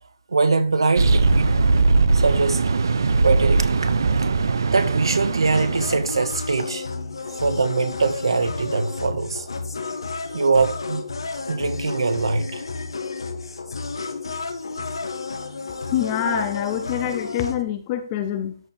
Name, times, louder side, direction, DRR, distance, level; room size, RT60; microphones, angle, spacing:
voice 1, 0.3-1.6 2.1-2.7 3.2-3.9 4.2-4.3 4.7-6.9 7.4-9.5 10.3-11.0 11.5-12.6 16.2-16.4, right 4 dB, 75° right, 1.6 m, -22 dB
sound 1, 1.0-6.3, right 3 dB, 50° right, 0.8 m, -20 dB
sound 2, 5.5-17.6, left 4 dB, 70° left, 1.5 m, -32 dB
voice 2, 15.9-18.6, left 10 dB, 15° left, 0.6 m, -25 dB
13.0 x 4.6 x 3.4 m
hypercardioid pair, 175°, 3 cm